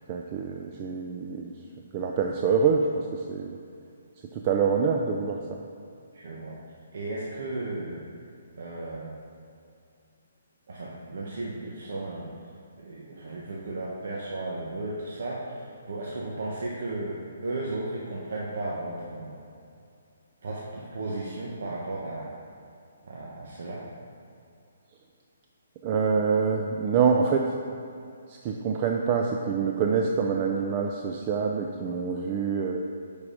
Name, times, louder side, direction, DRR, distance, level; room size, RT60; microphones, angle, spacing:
voice 1, 0.1-1.5 1.9-3.6 4.3-5.4 25.8-27.5 28.3-32.8, right 5 dB, 25° right, 1 dB, 0.4 m, -26 dB
voice 2, 6.1-6.6 6.9-8.0 8.6-9.2 10.7-12.3 12.8-19.4 20.4-22.3 23.0-23.8, right 2 dB, 65° right, -4 dB, 1.0 m, -35 dB
7.3 x 4.8 x 4.9 m, 2.5 s
hypercardioid pair, 165°, 0 cm